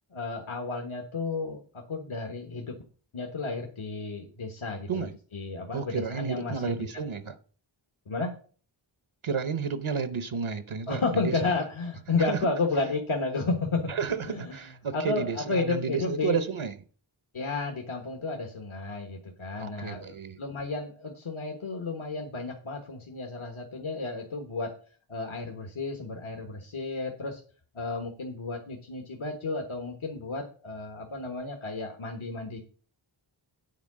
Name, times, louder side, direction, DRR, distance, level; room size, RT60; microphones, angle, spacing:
voice 1, 0.1-2.7 3.1-5.1 5.3-6.8 8.1-8.3 10.9-13.9 14.3-14.6 14.9-16.4 17.3-24.7 25.1-27.4 27.7-32.6, left 3 dB, 80° left, 1.5 m, -32 dB
voice 2, 5.7-7.4 9.2-11.4 12.2-12.5 13.9-16.8 19.6-20.4, right 6 dB, 75° right, 0.9 m, -31 dB
9.3 x 4.7 x 7.4 m
wide cardioid pair, 60°, 48 cm